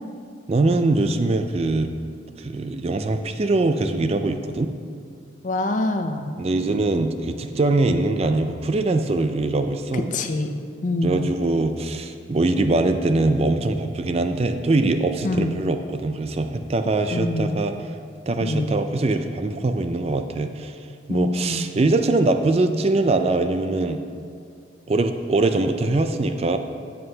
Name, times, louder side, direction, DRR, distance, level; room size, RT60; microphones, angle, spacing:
voice 1, 0.5-1.9 2.4-4.7 6.4-10.1 11.0-17.9 18.3-20.8 21.1-24.0 24.9-26.6, right 2 dB, 30° right, 8 dB, 0.3 m, -22 dB
voice 2, 5.4-6.3 10.1-11.3 15.2-15.5 17.1-17.6 18.4-18.8 21.1-21.7, left 2 dB, 40° left, 7 dB, 0.5 m, -25 dB
13.0 x 7.6 x 2.8 m, 2.3 s
head